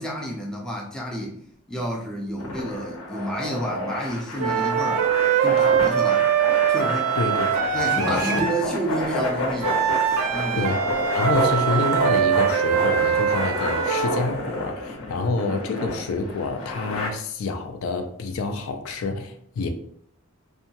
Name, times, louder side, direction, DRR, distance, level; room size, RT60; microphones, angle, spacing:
voice 1, 0.0-1.4 1.7-5.1 5.4-6.2 6.7-7.2 7.7-9.8 10.3-10.6, right 1 dB, 5° left, 0.4 m, -30 dB
sound 1, 2.4-17.1, left 1 dB, 90° left, 0.8 m, -29 dB
sound 2, 4.4-8.7 9.6-14.2, right 9 dB, 75° right, 0.4 m, -22 dB
voice 2, 7.2-8.5 10.6-19.7, left 3 dB, 70° left, 0.4 m, -28 dB
2.7 x 2.2 x 2.8 m
head